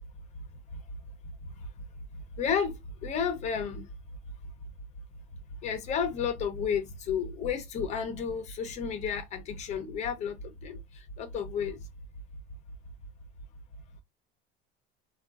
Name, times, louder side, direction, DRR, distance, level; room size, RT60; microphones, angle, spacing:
voice 1, 2.4-3.9 5.6-11.8, left 7 dB, 35° left, 0.6 m, -32 dB
3.7 x 2.3 x 2.3 m
cardioid pair, 160°, 20 cm